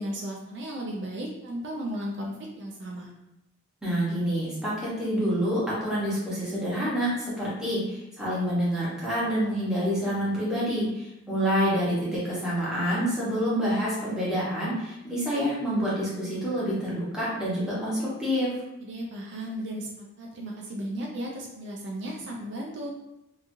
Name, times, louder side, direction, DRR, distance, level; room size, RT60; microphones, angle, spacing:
voice 1, 0.0-3.1 18.8-22.9, equal, 55° right, -1 dB, 0.4 m, -35 dB
voice 2, 3.8-18.5, equal, 5° right, -9 dB, 0.9 m, -27 dB
2.9 x 2.3 x 2.6 m, 0.91 s
head